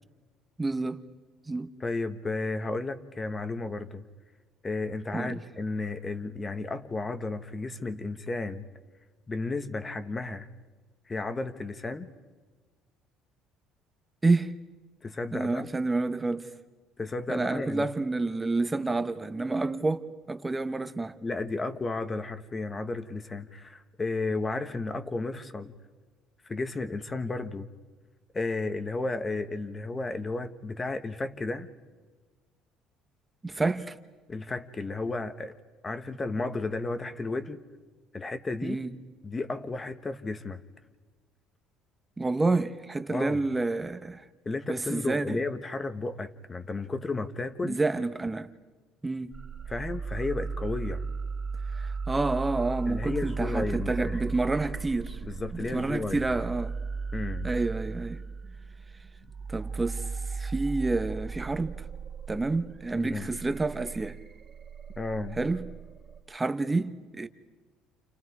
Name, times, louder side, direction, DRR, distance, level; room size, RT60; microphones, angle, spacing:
voice 1, 0.6-1.0 1.5-1.7 5.1-5.4 14.2-14.5 15.3-16.5 17.3-21.2 33.4-33.9 38.6-38.9 42.2-44.2 44.7-45.4 47.6-48.5 49.0-49.4 51.7-55.2 55.5-56.8 57.4-58.2 59.5-61.7 62.3-64.2 65.3-65.7 66.3-67.3, right 3 dB, 15° right, 1.1 m, -29 dB
voice 2, 1.8-4.0 4.6-8.6 9.3-10.5 11.1-12.1 15.0-15.7 17.0-17.9 21.2-25.7 26.5-27.7 28.3-31.7 34.3-35.5 35.8-37.6 38.1-38.8 39.2-40.6 43.1-43.4 44.4-47.8 49.7-51.1 52.9-54.2 55.2-56.3 57.1-57.5 62.9-63.3 65.0-65.4, left 3 dB, 20° left, 1.4 m, -33 dB
sound 1, 49.3-66.2, right 4 dB, 30° right, 3.1 m, -36 dB
29.5 x 29.5 x 4.8 m
cardioid pair, 105°, 0 cm